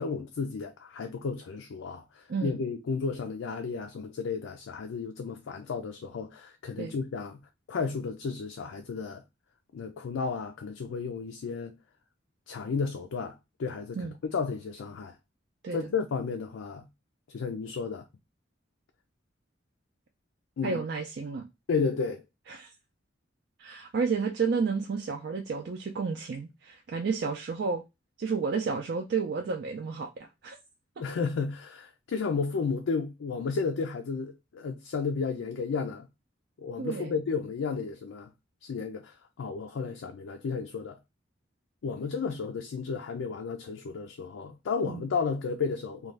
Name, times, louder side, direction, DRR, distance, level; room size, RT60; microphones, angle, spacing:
voice 1, 0.0-7.4 7.7-9.2 9.7-11.8 12.5-15.2 15.7-16.8 17.3-18.0 20.6-20.8 21.7-22.2 31.0-36.1 36.6-38.3 38.6-41.0 41.8-46.1, left 5 dB, 90° left, 0.4 m, -33 dB
voice 2, 2.3-2.6 6.8-6.9 14.0-14.1 15.6-15.8 20.6-21.5 22.5-22.7 23.6-27.8 28.2-30.6 36.8-37.1 44.8-45.0, right 5 dB, 60° right, 0.4 m, -31 dB
2.6 x 2.2 x 3.2 m
head